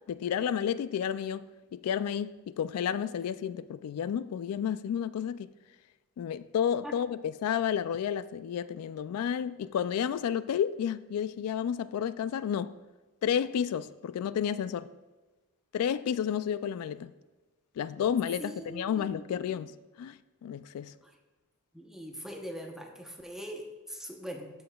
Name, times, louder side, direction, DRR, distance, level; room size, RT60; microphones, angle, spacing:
voice 1, 0.1-1.5 1.7-5.5 6.2-12.7 13.2-14.9 15.7-17.1 17.8-20.2 20.4-20.9, left 8 dB, 75° left, 0.3 m, -31 dB
voice 2, 18.4-19.5 21.0-21.1 21.7-24.5, equal, ahead, 0.8 m, -42 dB
13.0 x 6.9 x 2.3 m
head